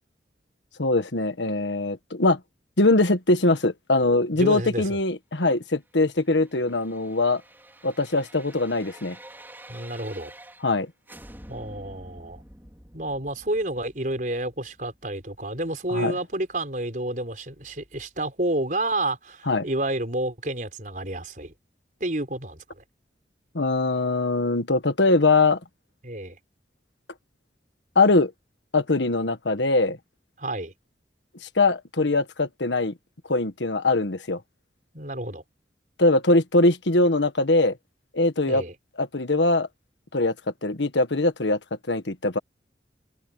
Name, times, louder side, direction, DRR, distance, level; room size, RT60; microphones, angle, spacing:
voice 1, 0.8-2.4 2.8-7.4 7.8-9.2 10.6-10.9 15.9-16.1 19.5-19.7 23.5-25.6 27.9-28.3 28.7-30.0 31.6-32.9 33.3-34.4 36.0-37.8 38.1-38.6 39.0-39.7 40.1-40.3 40.6-41.6 41.9-42.4, left 2 dB, 90° left, 1.6 m, -22 dB
voice 2, 4.3-5.0 9.7-10.3 11.5-12.4 12.9-21.5 22.0-22.8 26.0-26.4 30.4-30.7 34.9-35.4 38.5-38.7, right 1 dB, 45° right, 4.9 m, -30 dB
sound 1, 6.0-10.8 11.1-15.9 16.3-16.4, right 1 dB, 10° right, 5.1 m, -48 dB
open air
head